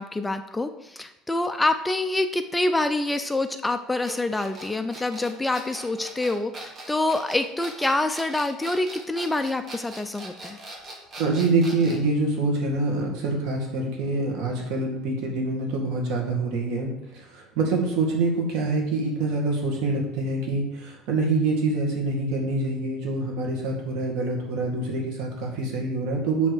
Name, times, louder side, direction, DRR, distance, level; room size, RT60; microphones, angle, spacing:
voice 1, 0.0-10.6, left 2 dB, 10° left, 8 dB, 0.3 m, -26 dB
sound 1, 4.0-12.1, right 2 dB, 25° right, 1.3 m, -41 dB
voice 2, 11.2-26.5, right 3 dB, 70° right, 0 dB, 2.0 m, -25 dB
7.8 x 3.5 x 6.3 m, 0.90 s
cardioid pair, 150°, 0 cm